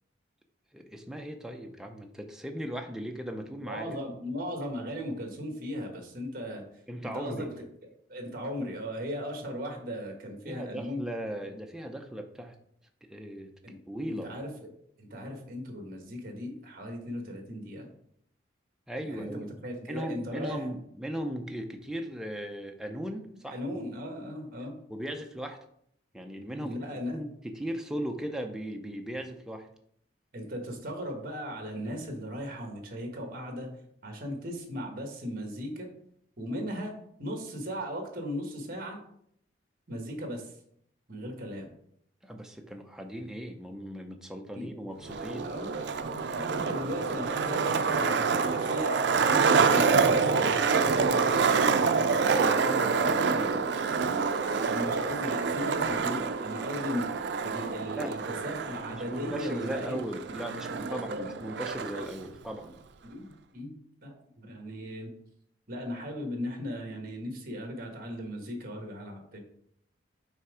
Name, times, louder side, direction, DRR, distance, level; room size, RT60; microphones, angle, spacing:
voice 1, 0.7-4.0 6.9-7.5 10.4-12.6 13.0-13.5 13.9-14.3 18.9-19.5 19.8-23.6 24.9-25.6 26.1-26.8 27.1-29.7 42.2-45.5 52.3-53.8 57.9-58.1 58.8-62.8, equal, 5° right, 3 dB, 0.5 m, -37 dB
voice 2, 3.7-6.6 7.0-7.5 8.1-11.0 13.6-13.8 14.1-14.7 15.0-17.9 19.0-20.7 23.5-24.8 26.5-27.2 30.3-33.7 34.0-35.9 36.4-36.9 37.2-39.0 39.9-40.5 41.1-41.7 44.5-44.7 45.4-48.2 48.5-51.8 54.7-57.1 57.4-60.0 60.9-61.2 61.9-62.0 63.0-65.1 65.7-69.4, equal, 45° right, 2 dB, 1.3 m, -37 dB
Skateboard, 45.0-62.0, right 5 dB, 65° right, 0.4 m, -27 dB
5.7 x 3.5 x 4.8 m, 0.70 s
head